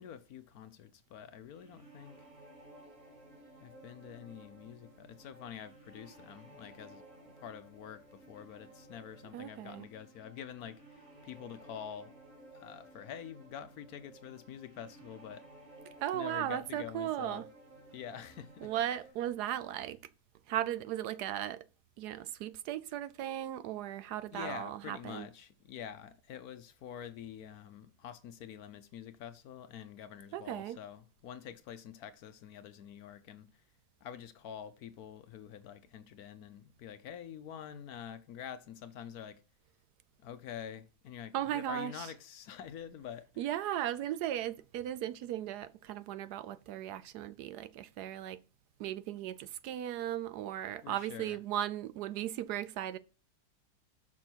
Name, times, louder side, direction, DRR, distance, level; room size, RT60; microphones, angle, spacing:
voice 1, 0.0-2.2 3.6-12.1 12.5-15.4 16.1-17.4 17.9-18.9 24.3-33.6 34.0-39.4 40.2-43.3 50.8-51.4, left 9 dB, 70° left, 1.0 m, -47 dB
sound 1, 1.4-19.1, right 1 dB, 35° right, 2.5 m, -56 dB
voice 2, 9.3-9.9 16.0-17.5 18.6-20.0 20.5-21.6 22.0-25.3 30.3-30.8 41.3-42.1 43.4-48.4 48.8-53.0, right 12 dB, 75° right, 1.1 m, -37 dB
6.0 x 6.0 x 4.4 m
omnidirectional pair, 1.9 m